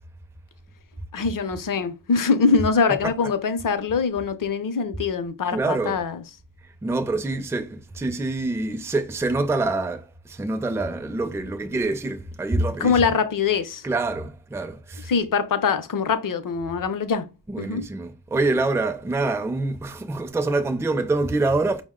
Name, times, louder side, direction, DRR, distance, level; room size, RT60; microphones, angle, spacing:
voice 1, 1.1-6.2 12.8-13.8 15.1-17.3 17.6-17.9, left 5 dB, 45° left, 0.5 m, -23 dB
voice 2, 5.5-6.0 6.8-13.0 13.8-15.1 17.5-21.8, right 2 dB, 5° right, 0.4 m, -26 dB
5.1 x 2.1 x 3.5 m
wide cardioid pair, 155°, 45 cm